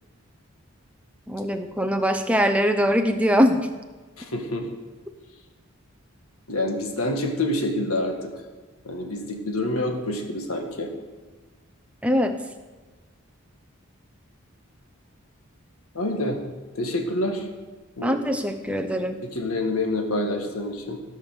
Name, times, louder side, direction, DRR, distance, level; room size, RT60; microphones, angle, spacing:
voice 1, 1.3-3.7 12.0-12.4 18.0-19.2, equal, 5° right, 6 dB, 0.7 m, -22 dB
voice 2, 4.2-4.6 6.5-8.3 8.8-10.9 16.0-16.4 16.7-17.5 18.0-18.2 18.6-18.7 19.2-21.0, left 1 dB, 80° left, 3 dB, 1.7 m, -27 dB
14.5 x 5.4 x 6.7 m, 1.3 s
head